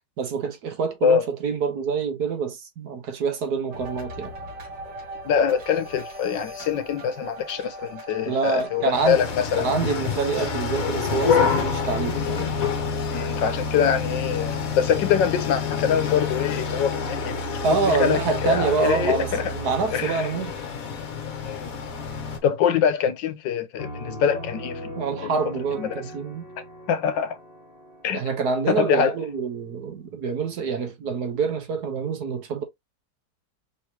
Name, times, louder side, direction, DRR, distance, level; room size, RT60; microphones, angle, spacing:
voice 1, 0.2-4.3 8.3-9.2 9.6-12.5 17.6-20.5 25.0-26.5 28.1-32.6, right 4 dB, 60° right, 1.5 m, -26 dB
sound 1, 3.7-9.4, right 1 dB, 85° right, 2.6 m, -39 dB
voice 2, 5.2-9.7 13.1-17.4 17.8-19.5 19.9-20.3 21.4-21.7 22.4-24.9 25.8-25.9 26.9-27.4 28.0-28.2 28.7-29.2, left 8 dB, 80° left, 1.4 m, -24 dB
sound 2, 8.9-22.4, left 5 dB, 55° left, 1.3 m, -27 dB
Piano, 23.8-29.3, left 1 dB, 30° left, 1.5 m, -40 dB
5.2 x 3.2 x 2.8 m
omnidirectional pair, 1.9 m